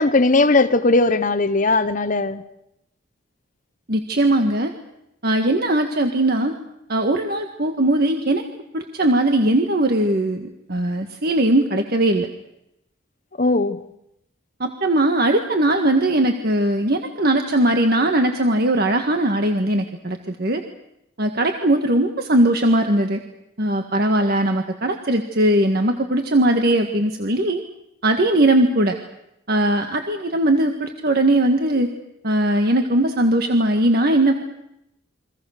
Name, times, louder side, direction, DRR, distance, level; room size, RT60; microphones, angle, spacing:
voice 1, 0.0-2.4 13.4-13.8, left 2 dB, 40° left, 1.0 m, -18 dB
voice 2, 3.9-4.7 5.2-6.5 6.9-8.4 8.7-12.3 14.6-20.6 21.2-23.2 23.6-27.6 28.0-29.0 29.5-31.9 32.2-34.4, right 1 dB, 50° right, 1.7 m, -19 dB
29.5 x 24.5 x 6.6 m
head